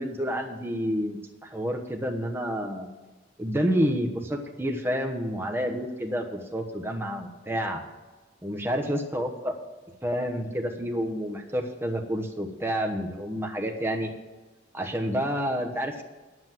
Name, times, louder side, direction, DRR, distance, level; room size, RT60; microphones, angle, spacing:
voice 1, 0.0-2.9 3.4-7.8 8.4-9.5 10.0-14.1 14.7-16.0, equal, 15° right, 2 dB, 1.1 m, -29 dB
10.5 x 7.9 x 7.6 m, 1.2 s
head